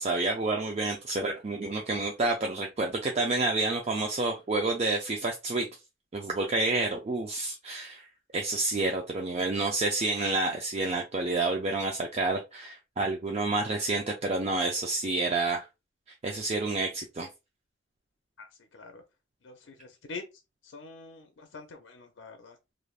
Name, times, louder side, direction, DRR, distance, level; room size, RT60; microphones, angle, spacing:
voice 1, 0.0-5.7 6.1-8.0 8.3-15.7 16.2-17.3, right 2 dB, 35° right, 0.4 m, -29 dB
voice 2, 20.7-21.2 21.5-22.5, left 4 dB, 75° left, 0.5 m, -43 dB
3.3 x 2.5 x 2.3 m
head